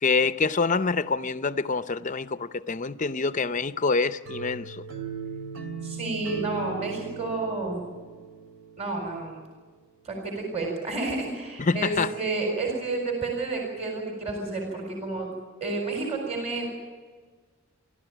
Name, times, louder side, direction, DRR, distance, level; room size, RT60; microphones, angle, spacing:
voice 1, 0.0-4.8 11.6-12.1, left 4 dB, 35° left, 0.6 m, -26 dB
sound 1, 4.2-9.1, right 6 dB, 70° right, 2.7 m, -37 dB
voice 2, 5.8-7.8 8.8-9.3 10.0-15.3 15.6-16.7, right 3 dB, 30° right, 4.3 m, -30 dB
29.5 x 13.0 x 9.0 m
head